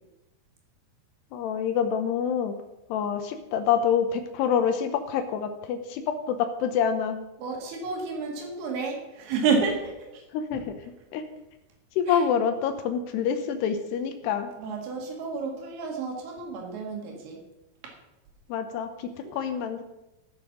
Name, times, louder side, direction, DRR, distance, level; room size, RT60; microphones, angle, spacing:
voice 1, 1.3-2.5 2.9-7.3 10.3-10.7 11.1-11.2 12.0-14.5 18.5-19.8, left 7 dB, 75° left, 7 dB, 2.6 m, -27 dB
voice 2, 7.4-10.2 10.5-10.6 12.1-12.2 14.6-17.4 17.8-17.9 19.2-19.3, right 4 dB, 60° right, 1 dB, 3.8 m, -30 dB
15.5 x 6.7 x 6.1 m, 0.96 s
omnidirectional pair, 5.6 m